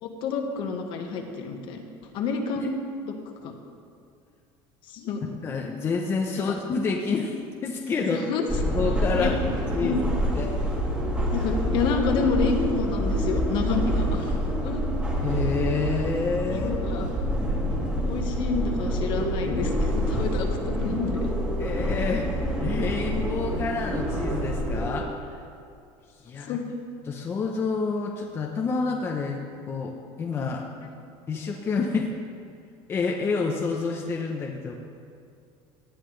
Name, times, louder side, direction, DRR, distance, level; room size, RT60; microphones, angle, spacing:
voice 1, 0.0-1.8 2.1-2.7 3.0-3.1 3.4-3.5 4.9-5.3 6.4-6.5 8.0-8.5 9.2-9.4 9.8-10.0 11.3-14.4 14.6-14.8 16.5-17.1 18.0-21.3 26.4-26.6, left 5 dB, 50° left, 4 dB, 1.4 m, -28 dB
voice 2, 5.4-8.2 8.7-9.4 9.7-10.0 10.3-10.5 15.2-16.7 21.6-25.4 26.2-26.6 27.1-30.7 31.3-32.2 32.9-34.8, left 4 dB, 20° left, 0 dB, 0.8 m, -28 dB
sound 1, 8.5-24.9, equal, 10° right, 2.0 m, -27 dB
18.0 x 11.5 x 3.3 m, 2.4 s
cardioid pair, 170°, 11 cm